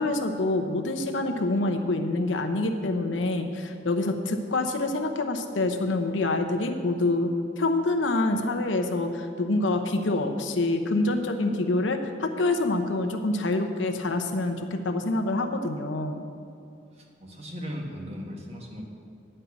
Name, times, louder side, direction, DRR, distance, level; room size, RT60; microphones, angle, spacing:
voice 1, 0.0-7.3 7.6-16.2, left 2 dB, 85° left, 6 dB, 0.8 m, -26 dB
voice 2, 16.9-18.8, equal, 35° right, 0 dB, 1.3 m, -37 dB
9.9 x 5.5 x 8.2 m, 2.4 s
head